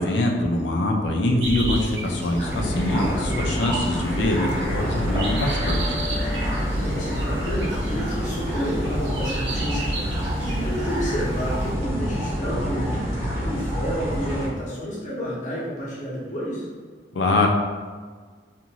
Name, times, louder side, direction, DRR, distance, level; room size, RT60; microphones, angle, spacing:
voice 1, 0.0-6.0 17.1-17.5, left 1 dB, 75° left, 1 dB, 0.4 m, -24 dB
sound 1, 1.4-11.7, right 2 dB, 75° right, 0.6 m, -35 dB
sound 2, 2.1-11.0, left 1 dB, 25° right, 0.5 m, -39 dB
sound 3, 2.4-14.5, equal, 45° right, 1.0 m, -27 dB
voice 2, 6.7-13.1 13.3-16.7, equal, 45° left, -7 dB, 0.9 m, -30 dB
2.5 x 2.5 x 2.9 m, 1.5 s
head